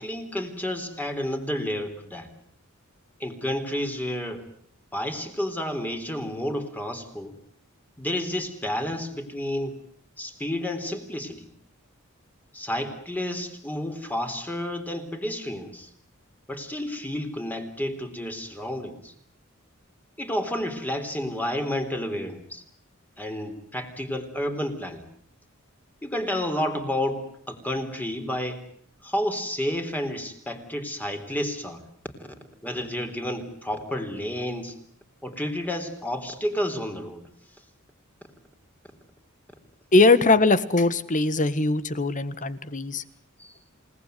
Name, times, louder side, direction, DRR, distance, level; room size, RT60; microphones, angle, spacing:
voice 1, 0.0-2.3 3.2-4.5 4.9-7.3 8.0-9.8 10.2-11.5 12.5-15.9 16.5-19.1 20.2-22.6 23.2-25.1 26.0-28.6 29.0-31.8 32.2-32.3 32.6-34.8 35.2-37.3 43.4-43.5, left 1 dB, 10° left, 6 dB, 3.7 m, -30 dB
voice 2, 39.9-43.0, left 3 dB, 40° left, 14 dB, 1.7 m, -21 dB
29.0 x 19.0 x 9.4 m, 0.62 s
head